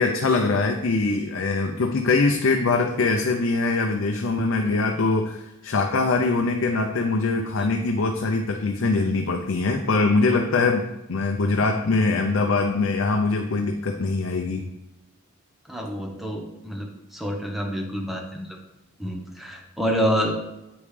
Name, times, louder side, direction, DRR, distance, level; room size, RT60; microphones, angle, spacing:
voice 1, 0.0-14.7, left 3 dB, 65° left, 3 dB, 0.6 m, -23 dB
voice 2, 15.7-18.6 19.0-20.4, equal, ahead, 1 dB, 1.0 m, -28 dB
8.0 x 5.3 x 3.3 m, 0.94 s
head